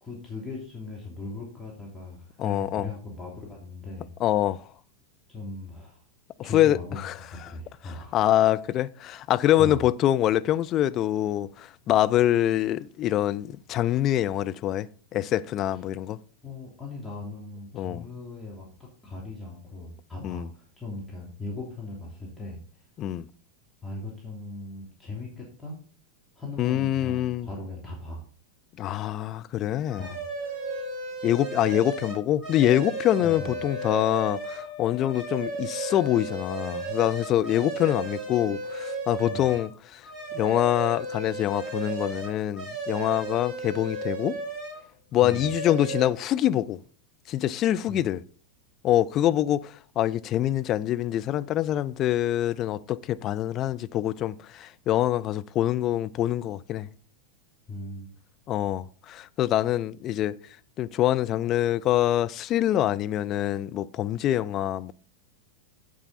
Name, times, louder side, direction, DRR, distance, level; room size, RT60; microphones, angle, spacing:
voice 1, 0.0-4.1 5.3-6.0 6.4-8.2 9.6-9.9 16.4-22.8 23.8-25.8 26.4-28.2 30.0-30.2 33.2-33.6 39.2-39.5 45.2-45.5 47.9-48.0 57.7-58.1, left 2 dB, 5° left, 2.9 m, -39 dB
voice 2, 2.4-2.9 4.2-4.6 6.5-7.2 7.4-7.5 8.1-14.9 15.1-16.2 17.7-18.0 20.2-20.5 23.0-23.3 26.6-27.5 28.8-30.1 31.2-40.0 40.3-44.4 45.1-46.8 47.3-48.2 48.8-56.9 58.5-60.3 60.8-64.9, left 12 dB, 35° left, 0.5 m, -25 dB
sound 1, 29.9-34.7 35.0-39.7 40.0-44.8 45.1-46.1, right 3 dB, 10° right, 4.7 m, -35 dB
Wind instrument woodwind instrument, 33.1-37.4, left 10 dB, 55° left, 0.8 m, -42 dB
9.1 x 8.1 x 4.1 m
figure-of-eight pair, 90°, 0 cm